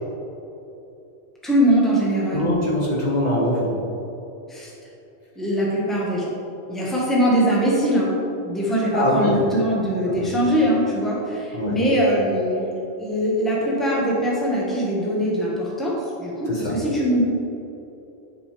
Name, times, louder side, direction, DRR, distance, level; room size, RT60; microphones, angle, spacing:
voice 1, 1.4-2.4 4.5-4.7 5.3-6.3 6.7-8.1 8.4-17.2, equal, ahead, -6 dB, 1.4 m, -22 dB
voice 2, 2.3-3.8 6.8-6.9 8.9-9.4 10.0-10.3 11.5-11.8 16.5-17.0, equal, 40° left, -7 dB, 1.6 m, -23 dB
10.5 x 5.3 x 3.4 m, 3.0 s
omnidirectional pair, 1.1 m